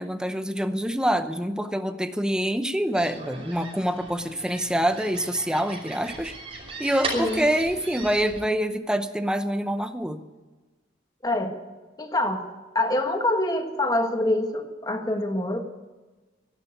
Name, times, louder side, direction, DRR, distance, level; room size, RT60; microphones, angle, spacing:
voice 1, 0.0-6.4 6.8-10.2, equal, 5° right, 9 dB, 0.7 m, -26 dB
sound 1, 2.9-8.4, right 2 dB, 30° right, 5.3 m, -37 dB
voice 2, 7.1-7.5 11.2-11.5 12.0-12.5 12.7-15.6, left 1 dB, 20° left, 5 dB, 1.5 m, -25 dB
12.0 x 12.0 x 9.4 m, 1.2 s
head